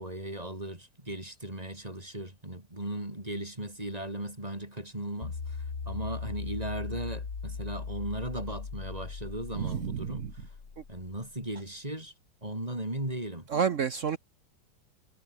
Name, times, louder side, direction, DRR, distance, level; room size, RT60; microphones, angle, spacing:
voice 1, 0.0-5.6 5.9-10.2 10.9-12.1 12.4-13.5, right 1 dB, 20° right, 5.1 m, -37 dB
sound 1, 5.2-11.5, left 5 dB, 40° left, 2.4 m, -39 dB
voice 2, 9.6-10.3 13.5-14.2, right 7 dB, 55° right, 0.9 m, -29 dB
omnidirectional pair, 2.2 m